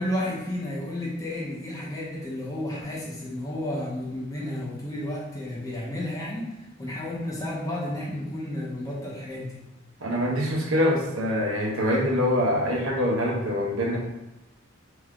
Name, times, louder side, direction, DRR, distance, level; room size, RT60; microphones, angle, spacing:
voice 1, 0.0-9.6, left 1 dB, 15° left, -4 dB, 0.9 m, -32 dB
voice 2, 10.0-14.0, left 1 dB, 70° right, -1 dB, 0.9 m, -24 dB
3.6 x 3.5 x 3.6 m, 0.96 s
head